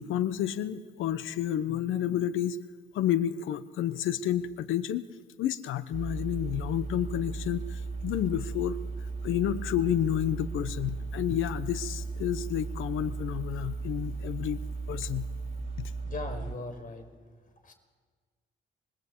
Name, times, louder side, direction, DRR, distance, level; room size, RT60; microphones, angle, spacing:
voice 1, 0.0-2.6 2.9-5.0 5.4-8.8 9.2-14.6 14.9-15.3 15.8-15.9, left 10 dB, 85° left, 13 dB, 1.0 m, -30 dB
sound 1, 5.9-16.6, right 4 dB, 40° right, 4.8 m, -36 dB
voice 2, 16.0-17.1 17.6-17.7, left 2 dB, 45° left, 7 dB, 5.2 m, -38 dB
28.0 x 23.0 x 8.4 m, 1.5 s
cardioid pair, 90°, 20 cm